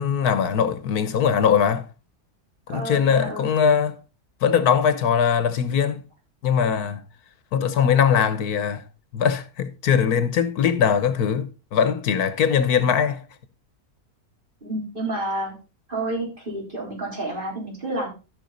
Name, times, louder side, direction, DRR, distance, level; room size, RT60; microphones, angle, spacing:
voice 1, 0.0-1.8 2.7-4.0 4.4-6.0 6.4-7.0 7.5-8.8 9.1-13.2, left 7 dB, 90° left, 1.5 m, -21 dB
voice 2, 2.7-3.5 14.6-15.5 15.9-18.1, right 2 dB, 35° right, 3.9 m, -29 dB
13.5 x 5.8 x 3.9 m
omnidirectional pair, 1.6 m